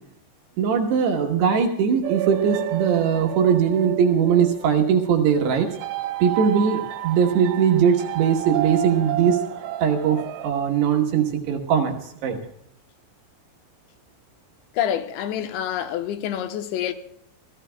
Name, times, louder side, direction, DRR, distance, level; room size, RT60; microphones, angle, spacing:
voice 1, 0.6-5.7 6.2-9.4 9.8-12.4, right 7 dB, 70° right, 2.9 m, -20 dB
sound 1, 2.0-10.5, right 14 dB, 85° right, 3.2 m, -31 dB
voice 2, 14.8-16.9, left 10 dB, 75° left, 3.1 m, -27 dB
28.5 x 16.0 x 2.2 m
omnidirectional pair, 5.6 m